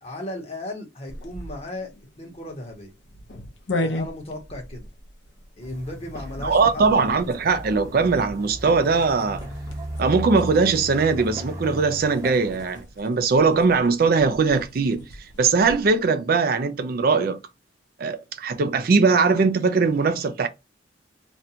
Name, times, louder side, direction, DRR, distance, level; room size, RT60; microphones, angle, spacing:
voice 1, 0.0-2.9 3.7-4.8 5.6-7.2, left 1 dB, 35° left, 1.0 m, -36 dB
sound 1, 1.1-16.0, left 1 dB, 75° left, 0.7 m, -38 dB
sound 2, 5.6-12.8, equal, 20° right, 0.7 m, -36 dB
voice 2, 6.4-9.4 10.0-15.1 15.4-17.4 18.0-20.5, right 4 dB, 55° right, 0.4 m, -20 dB
2.5 x 2.2 x 2.8 m
head